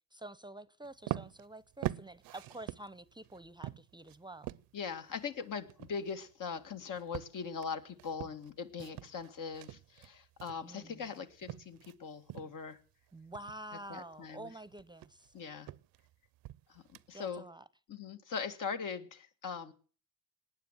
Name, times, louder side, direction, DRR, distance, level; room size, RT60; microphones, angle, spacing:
voice 1, 0.1-4.5 10.6-11.2 13.1-15.3 17.1-17.6, right 1 dB, 15° right, 0.7 m, -48 dB
sound 1, 0.8-12.0 12.3-12.7 13.1-17.4, right 15 dB, 75° right, 0.6 m, -44 dB
voice 2, 4.7-12.8 13.9-14.5 15.3-15.7 16.7-16.8 17.1-17.5 17.9-19.7, left 6 dB, 65° left, 1.9 m, -41 dB
18.5 x 9.6 x 7.3 m
supercardioid pair, 70°, 35 cm